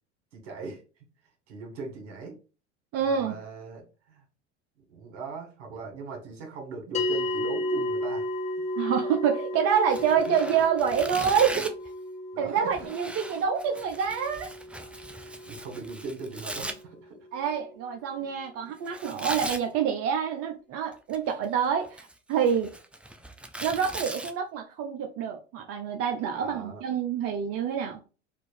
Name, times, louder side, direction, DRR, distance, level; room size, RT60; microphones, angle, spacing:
voice 1, 0.3-1.0 1.5-2.4 3.0-4.2 4.9-8.3 10.3-10.4 12.3-12.7 13.3-13.4 15.1-17.3 18.2-18.3 18.6-18.7 26.3-26.8, right 4 dB, 70° right, 1.9 m, -40 dB
voice 2, 2.9-3.4 8.8-11.8 12.4-14.5 17.3-22.7 23.6-28.0, right 7 dB, 40° right, 0.7 m, -27 dB
sound 1, 6.9-17.5, left 1 dB, 20° left, 1.4 m, -34 dB
Tearing, 9.8-11.9 12.7-16.7 18.9-19.6 20.9-21.4 21.8-24.3, right 1 dB, 5° right, 0.4 m, -39 dB
4.3 x 2.5 x 4.8 m
hypercardioid pair, 90°, 35 cm